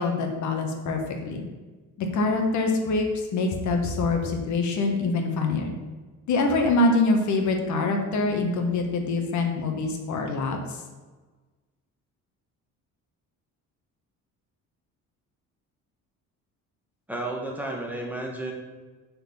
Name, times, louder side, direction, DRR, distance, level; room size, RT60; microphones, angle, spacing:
voice 1, 0.0-1.4 2.0-5.7 6.3-10.8, left 3 dB, 60° left, 4 dB, 1.4 m, -25 dB
voice 2, 17.1-18.5, right 2 dB, 5° right, -1 dB, 1.4 m, -32 dB
8.0 x 4.5 x 7.1 m, 1.3 s
cardioid pair, 165°, 32 cm